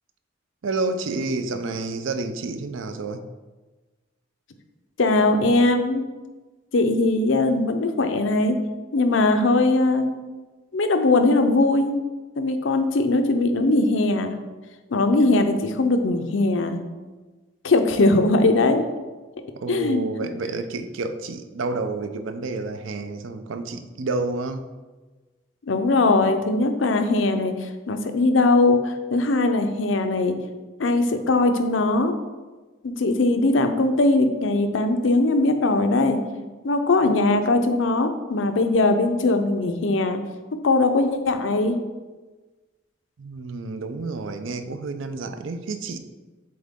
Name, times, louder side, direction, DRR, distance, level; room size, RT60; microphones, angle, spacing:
voice 1, 0.6-3.2 19.6-24.6 43.2-46.0, right 3 dB, 85° right, 9 dB, 0.5 m, -29 dB
voice 2, 5.0-6.0 6.7-8.6 8.9-10.1 10.7-11.9 12.4-14.3 14.9-16.8 17.6-18.8 19.7-20.0 25.7-30.4 30.8-32.2 32.8-36.2 36.6-40.2 40.6-41.8, left 2 dB, 80° left, 7 dB, 0.6 m, -20 dB
7.7 x 3.7 x 3.6 m, 1.3 s
head